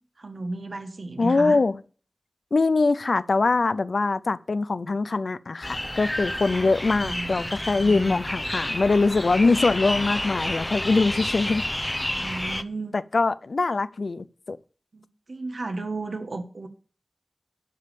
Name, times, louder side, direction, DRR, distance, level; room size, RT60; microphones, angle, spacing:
voice 1, 0.2-1.6 7.0-8.2 12.1-13.0 14.9-16.7, right 2 dB, 85° right, 1.4 m, -34 dB
voice 2, 1.2-1.8 2.5-11.6 12.9-14.6, left 3 dB, 85° left, 0.5 m, -23 dB
sound 1, 5.6-12.6, left 1 dB, 20° left, 0.7 m, -30 dB
11.5 x 5.3 x 6.8 m
wide cardioid pair, 45°, 0 cm